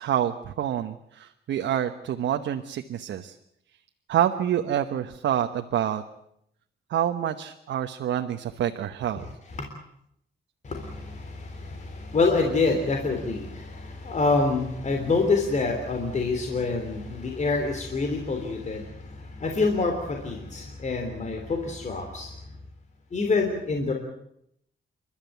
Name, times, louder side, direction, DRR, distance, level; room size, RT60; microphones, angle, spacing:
voice 1, 0.0-3.4 4.1-6.0 6.9-9.3, right 10 dB, 85° right, 6 dB, 1.1 m, -27 dB
voice 2, 9.2-9.6 10.6-22.3 23.1-23.9, left 3 dB, 40° left, 3 dB, 3.4 m, -27 dB
29.5 x 13.0 x 9.3 m, 0.75 s
cardioid pair, 130°, 19 cm